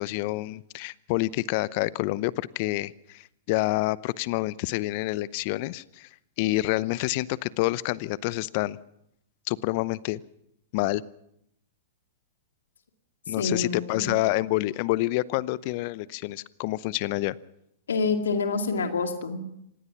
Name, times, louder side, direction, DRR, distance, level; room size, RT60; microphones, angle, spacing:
voice 1, 0.0-6.1 6.4-8.8 9.5-10.2 10.7-11.0 13.3-17.4, left 19 dB, 50° left, 20 dB, 0.7 m, -28 dB
voice 2, 13.4-14.2 17.9-19.4, left 4 dB, 75° left, 6 dB, 2.4 m, -27 dB
26.0 x 18.5 x 6.0 m, 0.76 s
hypercardioid pair, 105°, 0 cm